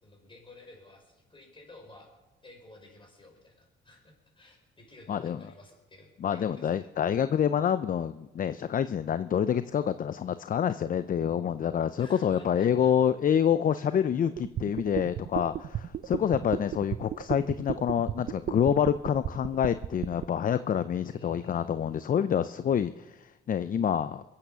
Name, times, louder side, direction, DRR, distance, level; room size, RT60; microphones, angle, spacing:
voice 1, 0.0-2.1 2.4-6.9 12.0-12.9 13.8-14.1 21.1-21.8, left 1 dB, 25° left, 1 dB, 5.7 m, -53 dB
voice 2, 5.1-5.4 6.2-24.2, left 8 dB, 45° left, 13 dB, 0.5 m, -27 dB
sound 1, 14.4-20.3, right 11 dB, 55° right, 0.6 m, -33 dB
22.5 x 8.7 x 6.8 m, 1.1 s
cardioid pair, 90°, 20 cm